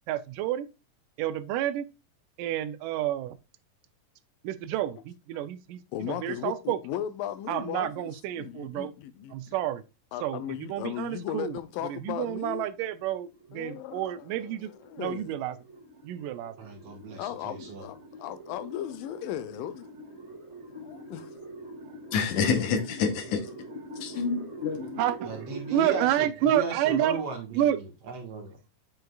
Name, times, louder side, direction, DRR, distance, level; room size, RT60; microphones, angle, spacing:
voice 1, 0.1-0.7 1.2-1.9 2.4-3.4 4.4-6.8 7.5-8.9 9.3-9.8 10.2-14.7 15.0-15.6 16.0-16.5 25.0-25.3 25.7-27.2 27.5-27.8, right 11 dB, 80° right, 2.1 m, -29 dB
voice 2, 5.9-8.1 8.4-9.6 10.1-12.7 13.5-15.3 17.2-19.9 20.5-21.3, left 11 dB, 85° left, 2.3 m, -37 dB
sound 1, 11.7-26.0, right 1 dB, 25° right, 2.7 m, -45 dB
voice 3, 16.6-17.9 25.2-28.5, right 5 dB, 60° right, 1.9 m, -36 dB
voice 4, 22.1-23.6 24.0-25.0, left 6 dB, 65° left, 2.1 m, -28 dB
7.8 x 5.8 x 2.3 m
omnidirectional pair, 4.0 m